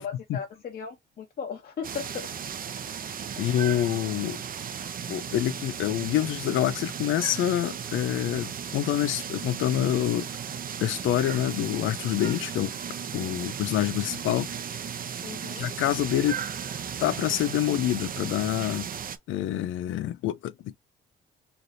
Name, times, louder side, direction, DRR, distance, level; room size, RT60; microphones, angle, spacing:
voice 1, 0.0-2.3 15.2-15.7, left 6 dB, 50° left, 0.9 m, -37 dB
sound 1, 1.8-19.2, right 8 dB, 45° right, 0.7 m, -36 dB
voice 2, 3.4-4.4 5.1-10.3 10.8-12.7 13.1-14.5 15.6-16.4 17.0-18.9 19.3-20.8, left 12 dB, 80° left, 0.5 m, -27 dB
3.3 x 2.6 x 4.1 m
cardioid pair, 90°, 20 cm